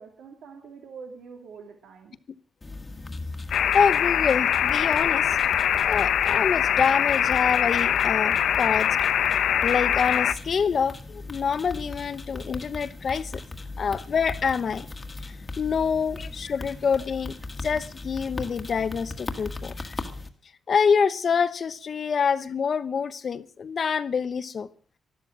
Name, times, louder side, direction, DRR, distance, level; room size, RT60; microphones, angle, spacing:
voice 1, 0.0-2.1, right 5 dB, 90° right, 2.5 m, -45 dB
sound 1, 2.6-20.3, left 3 dB, 20° left, 1.5 m, -38 dB
sound 2, 3.5-10.3, left 9 dB, 85° left, 0.9 m, -23 dB
voice 2, 3.7-5.4 5.9-9.0 9.6-13.4 13.8-14.9 15.6-17.3 17.6-20.0 20.7-24.7, left 6 dB, 45° left, 0.8 m, -26 dB
13.0 x 12.5 x 7.4 m
wide cardioid pair, 155°, 0 cm